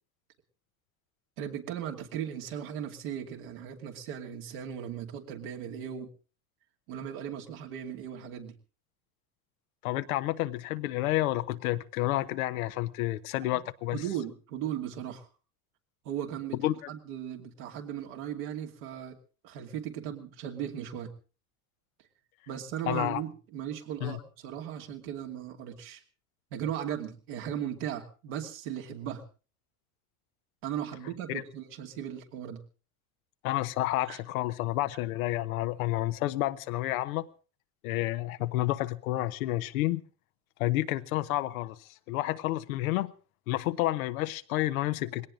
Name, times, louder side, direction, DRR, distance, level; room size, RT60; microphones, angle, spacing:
voice 1, 1.4-6.1 6.9-8.5 13.4-13.6 13.9-15.3 16.0-16.6 16.9-19.2 19.4-21.1 22.5-26.0 26.5-29.2 30.6-32.6 34.1-34.2, right 10 dB, 75° right, 2.8 m, -37 dB
voice 2, 9.8-14.0 16.6-16.9 22.9-23.2 24.0-24.2 31.3-31.4 33.4-37.3 37.8-40.0 40.6-43.1 43.5-45.3, left 16 dB, 80° left, 1.0 m, -30 dB
20.0 x 17.5 x 3.8 m
hypercardioid pair, 90°, 42 cm